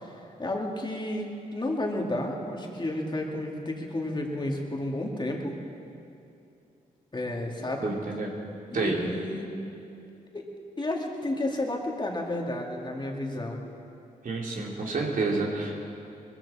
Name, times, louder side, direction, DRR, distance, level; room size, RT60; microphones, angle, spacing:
voice 1, 0.0-5.5 7.1-7.9 8.7-9.5 10.3-10.5 10.8-13.6, left 1 dB, 30° left, 0 dB, 2.5 m, -32 dB
voice 2, 7.8-8.3 8.7-9.0 14.2-15.9, right 3 dB, 65° right, -2 dB, 2.9 m, -29 dB
21.0 x 14.5 x 4.3 m, 2.7 s
cardioid pair, 65°, 15 cm